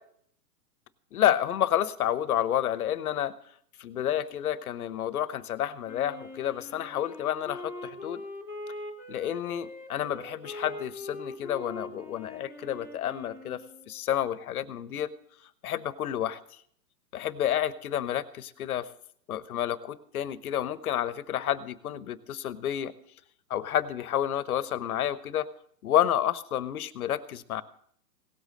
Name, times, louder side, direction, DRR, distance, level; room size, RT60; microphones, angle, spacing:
voice 1, 1.1-3.3 3.8-8.2 9.1-15.1 15.6-16.4 17.1-18.9 19.3-22.9 23.5-25.5 25.8-27.6, left 11 dB, 60° left, 17 dB, 1.0 m, -30 dB
Wind instrument woodwind instrument, 5.8-14.0, left 1 dB, 5° right, 1.9 m, -43 dB
17.5 x 8.2 x 6.4 m, 0.65 s
hypercardioid pair, 140°, 50 cm